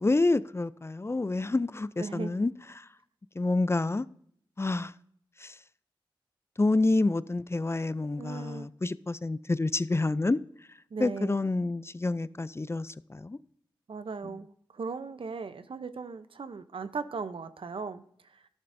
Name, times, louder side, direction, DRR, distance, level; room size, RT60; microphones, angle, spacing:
voice 1, 0.0-2.9 3.4-4.1 4.6-4.9 5.4-5.6 6.6-10.4 11.0-13.4 14.2-14.3, left 2 dB, 30° left, 0.4 m, -28 dB
voice 2, 2.0-2.4 8.2-8.7 10.9-11.4 13.9-18.4, right 4 dB, 75° right, 0.7 m, -38 dB
13.0 x 11.5 x 2.6 m
cardioid pair, 45°, 9 cm